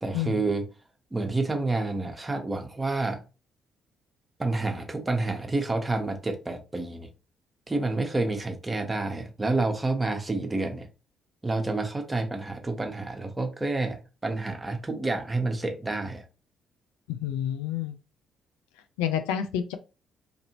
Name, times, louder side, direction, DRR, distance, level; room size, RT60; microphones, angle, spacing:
voice 1, 0.0-0.7 1.1-3.2 4.4-7.1 7.7-10.9 11.4-16.2, right 2 dB, 20° right, 0.9 m, -29 dB
voice 2, 17.1-17.9 19.0-19.8, left 10 dB, 80° left, 0.3 m, -29 dB
2.6 x 2.6 x 2.9 m
hypercardioid pair, 45°, 0 cm